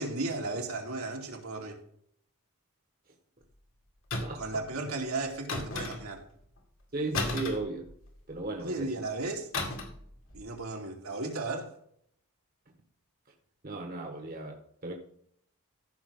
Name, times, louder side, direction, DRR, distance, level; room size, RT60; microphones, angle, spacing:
voice 1, 0.0-1.8 4.3-6.2 8.6-9.5 10.3-11.7, right 2 dB, 75° right, 2.4 m, -35 dB
sound 1, 4.1-4.5 5.5-6.3 7.1-8.3 9.5-10.0 10.3-10.5, left 2 dB, 60° left, 2.1 m, -34 dB
voice 2, 6.9-7.8 8.3-8.9 13.6-14.9, right 3 dB, 40° right, 1.5 m, -35 dB
15.0 x 6.0 x 3.8 m
head